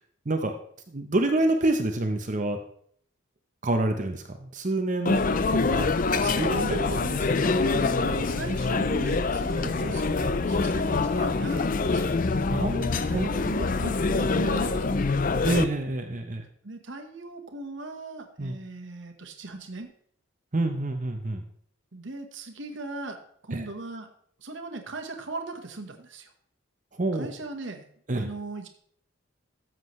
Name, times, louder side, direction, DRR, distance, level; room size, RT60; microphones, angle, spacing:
voice 1, 0.9-2.6 3.6-5.2 5.5-5.9 6.4-6.8 10.9-11.0 12.5-13.3 15.4-16.4 18.4-18.6 20.5-21.4 23.5-23.6 27.0-27.3 28.1-28.3, right 2 dB, 35° right, 6 dB, 0.8 m, -27 dB
sound 1, 5.1-15.6, left 3 dB, 40° left, 0.4 m, -25 dB
voice 2, 6.2-12.1 13.0-14.8 16.6-19.9 21.9-23.2 23.4-24.1 24.4-26.3 27.1-27.9 28.2-28.7, right 2 dB, 60° right, 5 dB, 1.3 m, -38 dB
13.0 x 7.5 x 3.2 m, 0.62 s
head